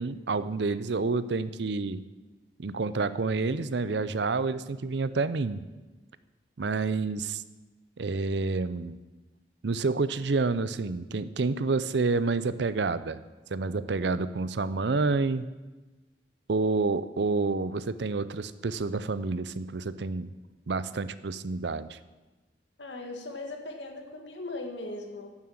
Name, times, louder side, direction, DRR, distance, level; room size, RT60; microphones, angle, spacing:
voice 1, 0.0-2.0 2.6-5.6 6.6-7.4 8.0-9.0 9.6-13.2 13.5-15.5 16.5-20.3 20.7-22.0, right 3 dB, 70° right, 14 dB, 0.6 m, -29 dB
voice 2, 22.8-25.3, left 2 dB, 80° left, 3 dB, 1.9 m, -38 dB
10.5 x 7.6 x 8.7 m, 1.2 s
head